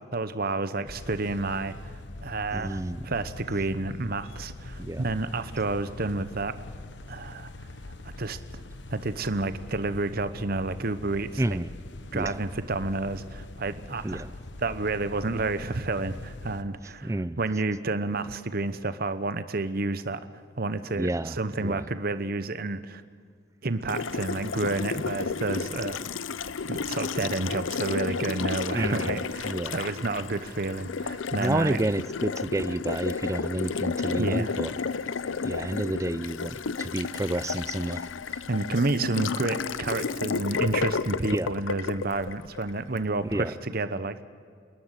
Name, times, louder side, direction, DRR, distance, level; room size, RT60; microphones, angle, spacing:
voice 1, 0.1-6.6 7.1-7.7 8.0-8.4 8.9-11.6 12.1-14.2 14.6-20.2 20.6-23.0 23.6-26.0 26.7-31.8 34.2-34.5 38.5-44.2, right 3 dB, 50° right, 12 dB, 1.0 m, -30 dB
sound 1, 0.9-16.6, left 2 dB, 65° left, 1.1 m, -43 dB
voice 2, 2.5-3.0 4.8-5.0 11.4-11.7 12.1-12.3 14.0-14.3 17.0-17.4 21.0-21.3 21.6-21.8 28.7-29.7 31.4-34.7 35.4-38.0 41.3-41.5 43.3-43.5, right 1 dB, 15° right, 16 dB, 0.5 m, -29 dB
Water tap faucet, 23.9-43.0, left 5 dB, 85° left, 0.7 m, -32 dB
28.0 x 11.5 x 9.0 m, 2.1 s
head